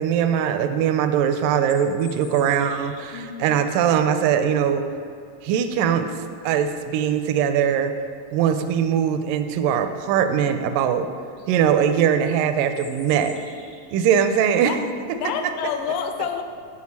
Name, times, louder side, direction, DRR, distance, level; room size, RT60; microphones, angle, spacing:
voice 1, 0.0-4.9 5.4-6.1 6.4-7.9 8.3-11.1 11.5-13.4 13.9-14.7, right 8 dB, 85° right, 8 dB, 2.2 m, -21 dB
sound 1, 1.4-3.3 7.8-7.9 8.3-8.7 10.8-10.9 11.2-11.5 12.6-14.0, left 4 dB, 60° left, 1.8 m, -47 dB
voice 2, 3.1-3.6 14.7-14.8 15.1-16.4, left 7 dB, 85° left, 6 dB, 2.2 m, -28 dB
8.3 x 4.6 x 7.1 m, 2.4 s
omnidirectional pair, 3.8 m